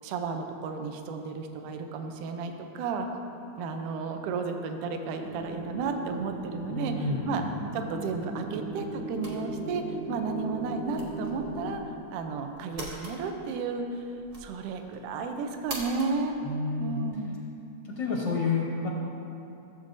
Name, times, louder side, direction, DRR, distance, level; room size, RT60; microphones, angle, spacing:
voice 1, 0.0-3.1 3.6-7.4 7.7-11.8 12.1-14.0 14.4-16.3 16.8-17.4, right 4 dB, 85° right, 5 dB, 2.2 m, -33 dB
sound 1, 5.2-11.7, right 1 dB, 65° right, 1.9 m, -38 dB
voice 2, 6.7-7.3 16.4-17.0 18.0-18.9, left 3 dB, 75° left, -4 dB, 1.0 m, -29 dB
sound 2, 9.2-17.3, right 1 dB, 40° right, 1.3 m, -45 dB
15.0 x 7.5 x 2.6 m, 2.8 s
omnidirectional pair, 3.6 m